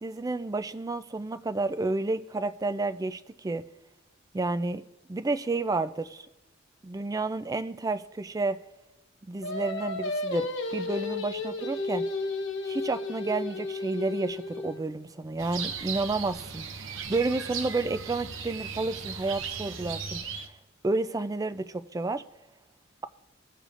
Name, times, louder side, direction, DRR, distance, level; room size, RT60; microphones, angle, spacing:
voice 1, 0.0-3.6 4.3-4.8 5.1-6.3 6.8-8.6 9.3-12.1 12.6-20.2 20.8-22.2, right 3 dB, 20° right, 11 dB, 0.3 m, -30 dB
Singing, 9.4-14.8, left 3 dB, 70° left, 1.2 m, -33 dB
sound 1, 15.4-20.5, right 6 dB, 80° right, 0.7 m, -37 dB
18.0 x 6.6 x 2.5 m, 0.95 s
head